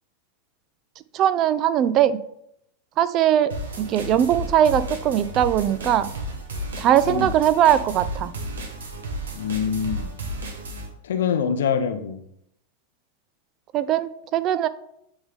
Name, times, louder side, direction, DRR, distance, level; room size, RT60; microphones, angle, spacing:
voice 1, 1.1-2.2 3.0-6.1 6.8-8.3 13.7-14.7, right 10 dB, 40° right, 15 dB, 0.4 m, -20 dB
sound 1, 3.5-10.9, right 1 dB, 85° right, 1.1 m, -33 dB
voice 2, 9.4-10.1 11.0-12.2, left 7 dB, 80° left, 7 dB, 0.6 m, -24 dB
7.9 x 3.6 x 3.5 m, 0.75 s
hypercardioid pair, 110°, 0 cm